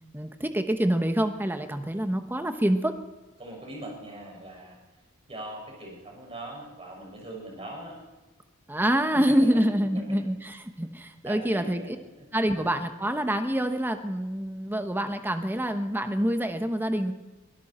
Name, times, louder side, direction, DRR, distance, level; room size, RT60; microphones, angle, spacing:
voice 1, 0.1-3.0 8.7-12.0 12.3-17.1, right 1 dB, 10° right, 7 dB, 1.1 m, -26 dB
voice 2, 3.4-4.8 5.3-8.0 9.1-9.6 11.2-11.9 12.2-12.3 12.5-12.7, right 1 dB, 25° right, -1 dB, 6.2 m, -40 dB
23.0 x 13.0 x 4.3 m, 1.2 s
head